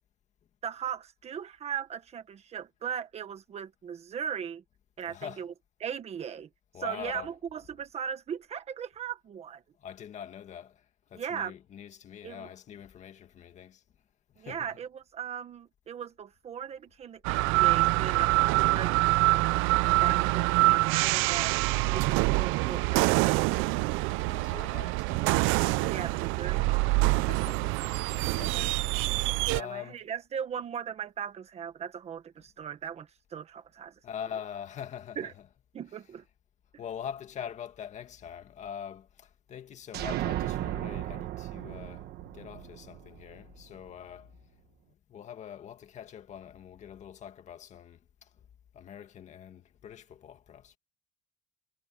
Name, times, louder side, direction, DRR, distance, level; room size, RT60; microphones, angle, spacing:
voice 1, 0.6-4.6 5.0-5.5 5.8-6.5 6.8-9.6 11.1-11.5 12.2-12.5 14.4-21.6 21.9-23.9 25.9-27.5 28.5-28.8 29.5-33.9 35.2-35.3 35.7-36.2, right 8 dB, 30° right, 1.4 m, -38 dB
voice 2, 5.1-5.5 6.7-7.6 9.8-13.8 14.4-14.8 20.0-20.3 24.3-25.3 25.7-26.2 27.1-28.9 29.5-30.1 34.0-35.5 35.8-36.1 36.8-42.1 42.3-44.3 45.1-48.3 48.7-50.8, left 8 dB, 35° left, 1.9 m, -44 dB
sound 1, 17.2-29.6, right 21 dB, 75° right, 0.6 m, -25 dB
sound 2, 39.9-43.6, right 14 dB, 55° right, 1.2 m, -35 dB
cardioid pair, 170°, 20 cm